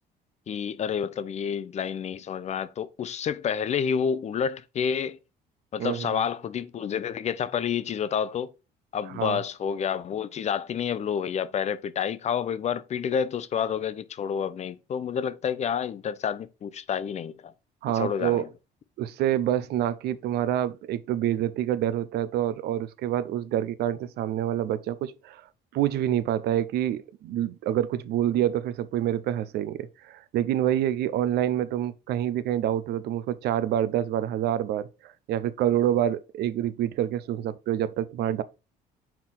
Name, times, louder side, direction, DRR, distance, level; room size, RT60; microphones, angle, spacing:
voice 1, 0.5-5.2 5.7-8.5 8.9-17.5 17.9-18.5, left 7 dB, 40° left, 0.5 m, -29 dB
voice 2, 5.8-6.2 9.1-9.4 17.8-18.4 19.0-25.4 25.7-38.4, right 11 dB, 75° right, 0.6 m, -27 dB
5.7 x 4.5 x 3.8 m
cardioid pair, 110°, 17 cm